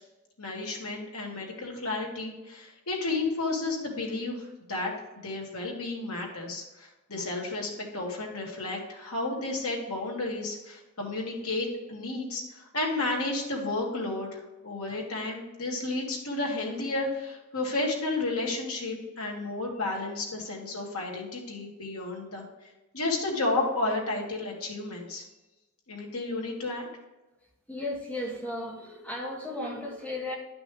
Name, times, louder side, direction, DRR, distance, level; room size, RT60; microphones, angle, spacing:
voice 1, 0.4-4.9 5.2-22.5 22.9-25.2 25.9-26.8, left 2 dB, 90° left, -1 dB, 2.4 m, -32 dB
voice 2, 27.7-30.3, left 1 dB, 5° left, -2 dB, 1.5 m, -35 dB
11.5 x 6.0 x 3.4 m, 1.1 s
head